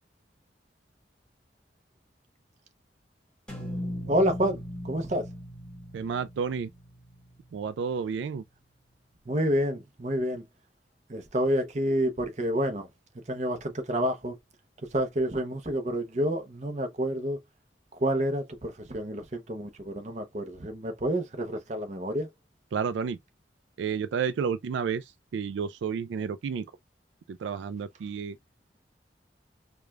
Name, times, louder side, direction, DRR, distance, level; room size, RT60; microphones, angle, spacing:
sound 1, 3.5-7.7, equal, 5° left, 1.7 m, -39 dB
voice 1, 4.1-5.2 9.3-10.4 11.1-12.9 13.3-14.4 14.9-17.4 18.0-22.3, equal, 40° right, 0.7 m, -29 dB
voice 2, 5.9-6.7 7.5-8.4 22.7-23.2 23.8-26.7 27.3-28.4, right 6 dB, 80° right, 0.3 m, -31 dB
4.8 x 2.3 x 2.3 m
head